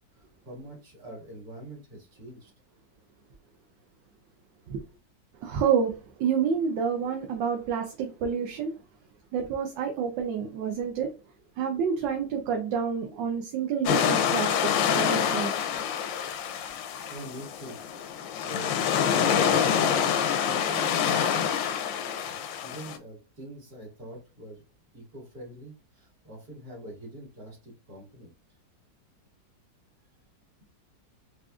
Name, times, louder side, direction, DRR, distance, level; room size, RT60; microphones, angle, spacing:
voice 1, 0.4-2.5 17.1-17.8 18.2-21.5 22.3-24.6 24.9-28.3, right 1 dB, 55° right, 2.2 m, -44 dB
voice 2, 5.4-5.9 6.2-8.7 9.3-11.1 11.6-15.5, right 7 dB, 80° right, 1.3 m, -28 dB
sound 1, 13.9-23.0, left 8 dB, 85° left, 1.3 m, -26 dB
4.9 x 2.5 x 2.3 m
omnidirectional pair, 2.0 m